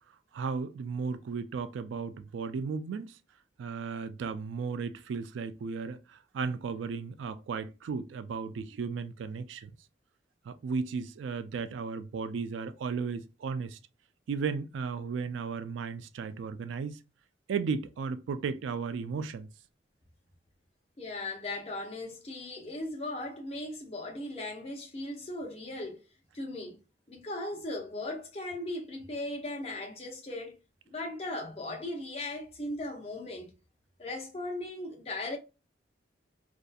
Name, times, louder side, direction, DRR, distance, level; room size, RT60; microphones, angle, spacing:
voice 1, 0.3-3.2 3.6-9.7 10.5-13.8 14.3-17.0 17.5-19.5, right 5 dB, 85° right, 0.3 m, -35 dB
voice 2, 21.0-26.0 26.3-26.8 27.1-30.6 30.9-33.5 34.0-35.4, left 2 dB, 35° left, 0.6 m, -38 dB
2.6 x 2.4 x 2.2 m
head